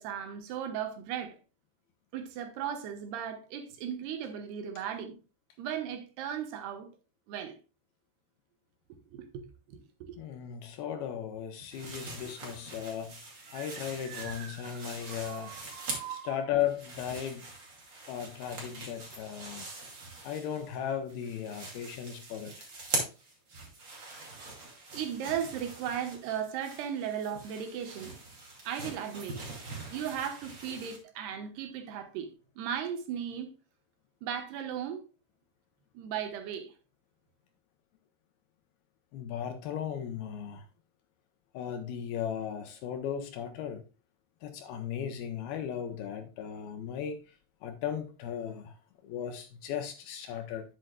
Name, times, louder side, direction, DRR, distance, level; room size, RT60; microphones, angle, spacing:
voice 1, 0.0-1.4 2.1-5.2 5.6-6.9 7.3-7.6 9.1-10.2 13.4-16.4 24.9-28.2 28.6-29.4 29.9-32.3 32.6-33.5 34.2-35.0 35.9-36.7, right 8 dB, 75° right, 3.0 m, -37 dB
voice 2, 10.2-13.2 13.5-15.5 16.1-17.5 18.1-19.7 20.2-22.7 39.1-40.6 41.5-43.8 44.4-47.3 47.6-48.7 49.0-50.6, left 9 dB, 75° left, 2.5 m, -36 dB
sound 1, 11.7-16.3 16.6-20.8 21.1-31.0, right 3 dB, 30° right, 2.5 m, -42 dB
10.5 x 7.8 x 2.3 m
omnidirectional pair, 5.0 m